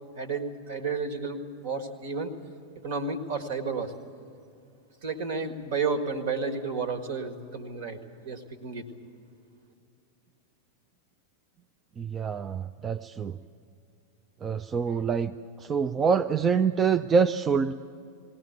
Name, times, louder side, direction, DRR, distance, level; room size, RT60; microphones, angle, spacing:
voice 1, 0.2-2.3 2.8-3.9 5.0-8.8, right 4 dB, 55° right, 8 dB, 1.8 m, -32 dB
voice 2, 12.0-13.4 14.4-17.7, right 6 dB, 20° right, 9 dB, 0.5 m, -26 dB
20.5 x 17.5 x 9.5 m, 2.5 s
figure-of-eight pair, 90°, 0 cm